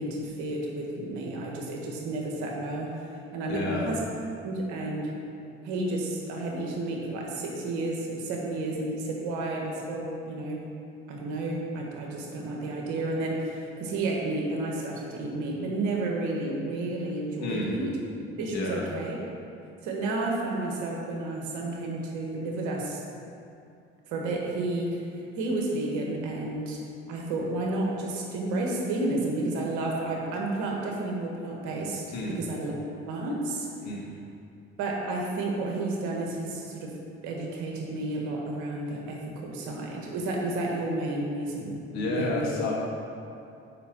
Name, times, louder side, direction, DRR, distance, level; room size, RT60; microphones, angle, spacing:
voice 1, 0.0-4.0 4.4-5.2 5.6-10.7 11.1-18.0 18.4-19.2 19.8-23.0 24.1-25.1 25.4-26.8 27.1-32.8 33.1-33.7 34.8-37.0 37.2-41.8 42.2-42.5, right 2 dB, 75° right, -1 dB, 1.6 m, -31 dB
voice 2, 3.5-3.9 17.4-17.8 18.5-18.9 32.1-32.4 33.8-34.1 41.9-42.7, left 2 dB, 65° left, -3 dB, 2.0 m, -30 dB
6.8 x 5.4 x 6.4 m, 2.6 s
hypercardioid pair, 60°, 29 cm